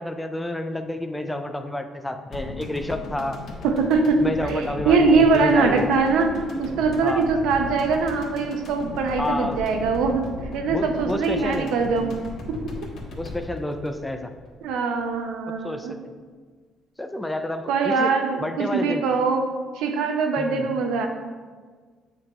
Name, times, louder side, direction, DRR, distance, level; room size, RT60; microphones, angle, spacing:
voice 1, 0.0-3.4 4.2-5.8 7.0-7.3 9.2-9.6 10.7-11.7 13.2-14.3 15.6-16.1 17.0-18.1 18.4-19.0 20.4-20.7, left 1 dB, 5° left, 7 dB, 0.3 m, -29 dB
sound 1, 2.3-14.7 14.9-15.0, left 3 dB, 60° left, 1.3 m, -37 dB
voice 2, 3.6-6.3 6.6-10.2 10.5-12.2 14.6-15.9 17.7-19.4 19.7-21.1, right 4 dB, 85° right, 4 dB, 0.7 m, -22 dB
8.4 x 3.4 x 4.2 m, 1.5 s
cardioid pair, 145°, 0 cm